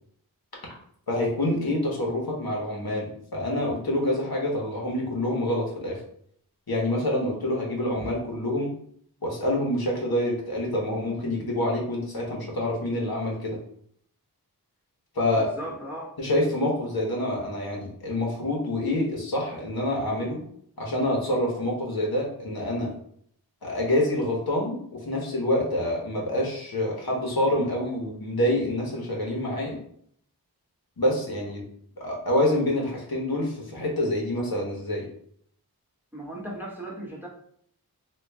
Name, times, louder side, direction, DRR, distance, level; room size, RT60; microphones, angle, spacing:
voice 1, 1.1-6.0 6.7-8.7 9.2-13.6 15.1-15.5 16.2-20.4 20.8-22.9 23.6-29.8 31.0-31.6 32.0-35.1, left 1 dB, 70° left, -2 dB, 1.1 m, -27 dB
voice 2, 15.4-16.1 36.1-37.3, right 1 dB, 5° right, -4 dB, 0.9 m, -37 dB
3.0 x 2.4 x 3.4 m, 0.65 s
wide cardioid pair, 45°, 39 cm